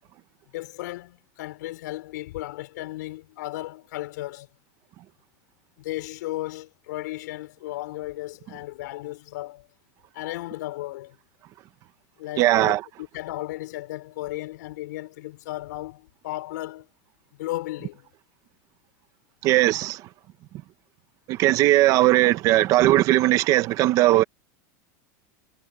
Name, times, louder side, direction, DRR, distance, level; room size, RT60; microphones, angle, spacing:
voice 1, 0.5-4.5 5.8-9.7 10.1-11.2 12.2-16.9 17.4-18.1, left 17 dB, 75° left, 5.9 m, -35 dB
voice 2, 12.4-12.8 19.4-20.0 21.3-24.2, right 16 dB, 35° right, 1.1 m, -19 dB
supercardioid pair, 165°, 10 cm